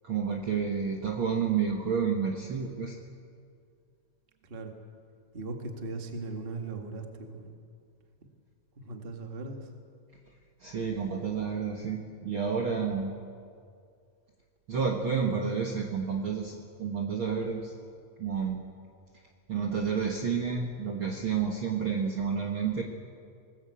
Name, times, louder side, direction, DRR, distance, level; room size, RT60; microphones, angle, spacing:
voice 1, 0.0-3.0 10.6-13.2 14.7-17.7 18.2-18.6 19.5-22.8, right 6 dB, 75° right, 2 dB, 1.1 m, -30 dB
voice 2, 4.4-4.7 5.3-7.6 8.7-9.7, right 3 dB, 30° right, 3 dB, 0.9 m, -38 dB
21.5 x 19.5 x 8.3 m, 2.3 s
omnidirectional pair, 4.5 m